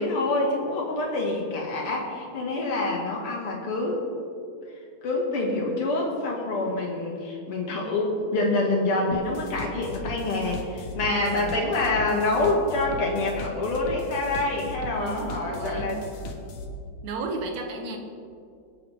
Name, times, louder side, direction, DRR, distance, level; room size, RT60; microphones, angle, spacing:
voice 1, 0.0-4.0 5.0-16.0, left 2 dB, 45° left, -2 dB, 2.7 m, -26 dB
sound 1, 9.1-16.7, left 1 dB, 65° left, 2.0 m, -38 dB
voice 2, 11.1-11.6 15.0-16.1 17.0-18.0, right 3 dB, 65° right, 4 dB, 2.0 m, -34 dB
23.5 x 8.2 x 3.7 m, 2.4 s
omnidirectional pair, 4.1 m